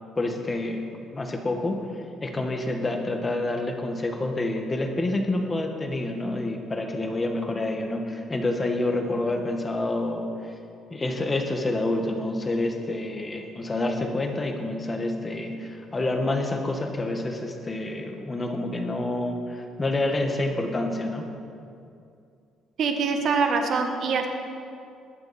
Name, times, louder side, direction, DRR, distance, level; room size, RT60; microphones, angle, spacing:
voice 1, 0.1-0.8 1.1-10.5 10.9-21.3, left 2 dB, 15° left, 3 dB, 1.4 m, -28 dB
voice 2, 22.8-24.3, right 5 dB, 45° right, 4 dB, 1.4 m, -24 dB
21.5 x 11.5 x 4.2 m, 2.5 s
cardioid pair, 175°, 0 cm